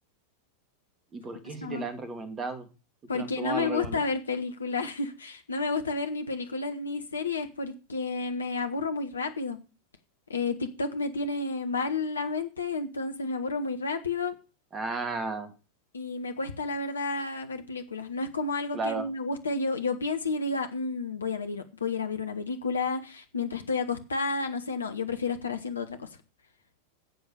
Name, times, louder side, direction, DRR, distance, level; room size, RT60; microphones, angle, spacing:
voice 1, 1.1-2.7 3.1-4.0 14.7-15.5 18.7-19.1, right 3 dB, 20° right, 10 dB, 2.4 m, -34 dB
voice 2, 3.1-9.6 10.3-14.3 15.9-26.1, left 3 dB, 75° left, 7 dB, 1.4 m, -31 dB
12.5 x 7.8 x 6.5 m, 0.32 s
figure-of-eight pair, 90°, 0 cm